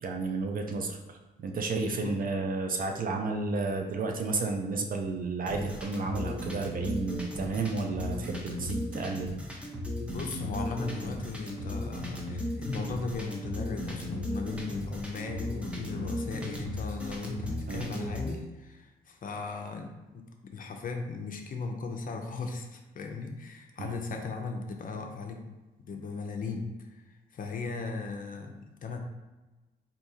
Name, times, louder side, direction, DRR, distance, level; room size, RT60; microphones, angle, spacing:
voice 1, 0.0-9.4 17.7-17.9 23.8-23.9, right 3 dB, 45° right, 3 dB, 0.4 m, -32 dB
sound 1, 5.5-18.3, left 1 dB, 5° right, 0.6 m, -36 dB
voice 2, 10.0-20.2 20.5-25.4 25.8-29.0, left 4 dB, 45° left, 3 dB, 0.5 m, -37 dB
3.5 x 2.7 x 2.7 m, 1.1 s
cardioid pair, 90°, 20 cm